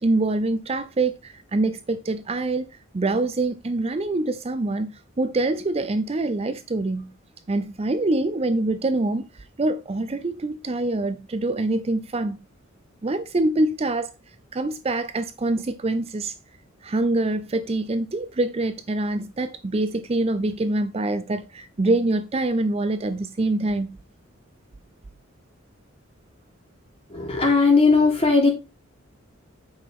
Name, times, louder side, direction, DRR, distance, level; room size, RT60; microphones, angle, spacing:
voice 1, 0.0-2.7 2.9-7.1 7.5-9.3 9.6-12.4 13.0-14.1 14.5-16.3 16.8-23.9, right 2 dB, 30° right, 0.5 m, -25 dB
voice 2, 27.1-28.5, left 4 dB, 30° left, 3.4 m, -18 dB
8.7 x 5.9 x 3.6 m
head